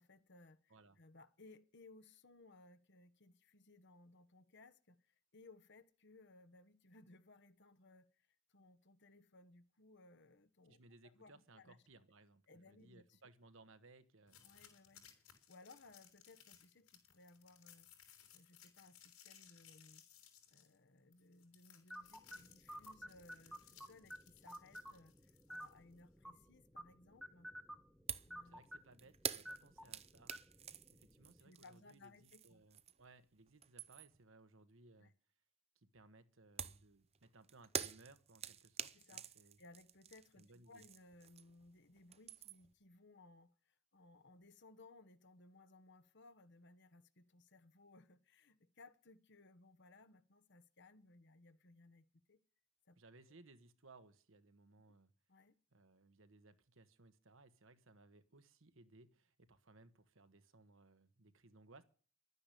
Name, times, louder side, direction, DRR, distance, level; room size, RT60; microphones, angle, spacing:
voice 1, 0.0-11.8 12.5-13.2 14.4-15.1 15.5-17.9 18.3-20.0 20.5-27.5 28.2-28.6 31.4-32.6 35.0-35.1 38.9-39.2 39.6-52.4 52.9-53.0 55.3-55.6, left 2 dB, 55° left, 1.2 m, -63 dB
voice 2, 10.7-14.4 28.4-30.3 30.9-35.1 35.7-39.6 40.4-40.8 52.9-55.1 55.7-61.8, right 2 dB, 65° right, 1.4 m, -64 dB
sound 1, 14.3-26.0, left 10 dB, 85° left, 5.4 m, -64 dB
sound 2, 21.9-31.4, equal, ahead, 1.4 m, -54 dB
sound 3, 28.1-28.4 28.6-33.1 33.5-34.2 36.6-41.7 42.0-42.7, right 8 dB, 30° right, 0.7 m, -47 dB
12.0 x 9.7 x 9.9 m
head